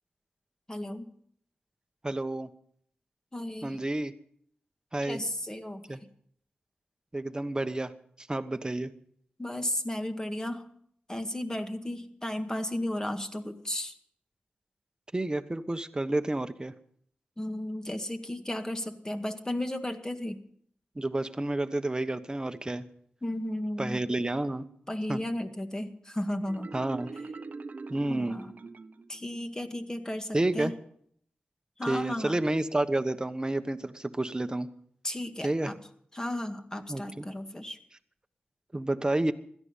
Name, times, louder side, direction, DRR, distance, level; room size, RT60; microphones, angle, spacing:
voice 1, 0.7-1.1 3.3-3.8 5.0-6.0 9.4-10.6 11.1-13.9 17.4-20.4 23.2-24.0 24.9-26.7 28.1-28.5 29.1-30.7 31.8-32.4 35.0-35.7 36.1-37.8, left 1 dB, 15° left, 6 dB, 1.9 m, -34 dB
voice 2, 2.0-2.5 3.6-4.1 4.9-5.2 5.9-6.0 7.1-7.9 8.2-8.9 15.1-16.7 21.0-22.9 23.8-24.7 25.1-25.2 26.7-27.1 27.9-28.4 30.3-30.7 31.9-34.7 35.4-35.7 36.9-37.3 38.7-39.3, right 2 dB, 20° right, 10 dB, 1.2 m, -30 dB
Marimba xylophone, 26.5-29.2, right 3 dB, 50° right, 0.8 m, -42 dB
16.5 x 13.5 x 5.6 m, 0.64 s
cardioid pair, 60°, 4 cm